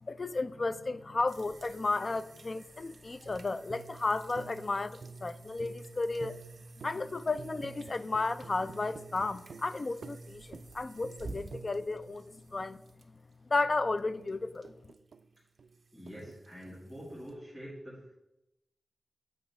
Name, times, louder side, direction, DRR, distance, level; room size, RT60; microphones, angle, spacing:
voice 1, 0.0-6.4 6.8-12.8 13.5-14.7, left 3 dB, 40° left, 13 dB, 0.3 m, -33 dB
sound 1, 1.3-17.3, right 2 dB, 55° right, 0.9 m, -54 dB
sound 2, 3.2-12.9 13.6-15.3 15.6-17.2, right 5 dB, 75° right, 0.3 m, -50 dB
voice 2, 15.9-18.2, equal, 10° left, -7 dB, 1.7 m, -46 dB
7.9 x 3.4 x 5.3 m, 0.90 s
wide cardioid pair, 125°, 0 cm